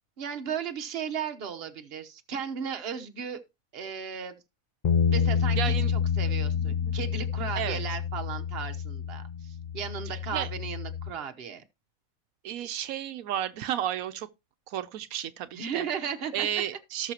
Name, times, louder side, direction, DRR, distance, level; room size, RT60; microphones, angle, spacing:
voice 1, 0.2-3.4 3.7-4.4 5.1-11.6 15.5-16.5, right 7 dB, 50° right, 1.2 m, -35 dB
sound 1, 4.8-11.1, left 7 dB, 50° left, 0.5 m, -28 dB
voice 2, 5.6-5.9 6.8-6.9 7.6-7.8 10.3-10.5 12.4-14.3 14.7-15.9 16.3-17.1, right 11 dB, 85° right, 1.1 m, -32 dB
17.5 x 6.2 x 2.9 m
omnidirectional pair, 1.4 m